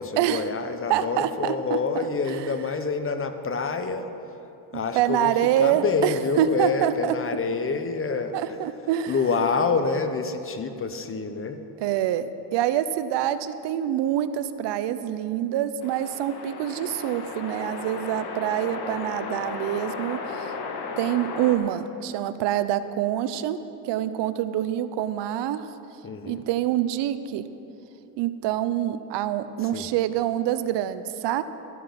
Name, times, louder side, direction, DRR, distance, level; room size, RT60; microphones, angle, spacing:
voice 1, 0.0-4.1 4.7-8.6 9.1-11.6 26.0-26.5 29.6-29.9, left 4 dB, 25° left, 8 dB, 0.9 m, -27 dB
voice 2, 0.9-1.8 2.3-2.4 4.9-7.2 8.3-9.1 11.8-20.5 21.0-23.6 23.8-25.7 26.2-27.4 28.2-31.4, right 11 dB, 60° right, 13 dB, 0.7 m, -26 dB
sound 1, 15.8-21.6, left 4 dB, 55° left, 1.5 m, -35 dB
12.5 x 10.0 x 5.9 m, 2.9 s
supercardioid pair, 90°, 47 cm